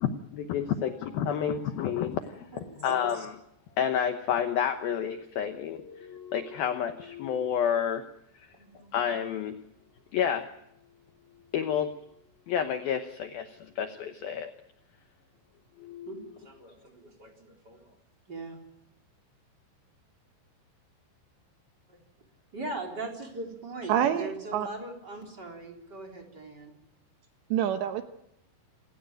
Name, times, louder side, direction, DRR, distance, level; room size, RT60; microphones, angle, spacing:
voice 1, 0.0-3.4 3.8-8.0 8.4-8.5 8.9-9.6 10.1-10.5 11.5-11.9 12.5-14.5 15.8-16.2, left 8 dB, 75° left, 8 dB, 2.2 m, -30 dB
voice 2, 2.5-3.3 8.5-8.9 13.8-13.9 16.1-17.9 18.3-18.6 21.9-22.0 22.5-26.7, right 2 dB, 20° right, 1 dB, 4.1 m, -41 dB
voice 3, 23.9-24.7 27.5-28.0, right 10 dB, 75° right, 7 dB, 3.0 m, -27 dB
27.5 x 16.5 x 9.1 m, 0.80 s
omnidirectional pair, 5.6 m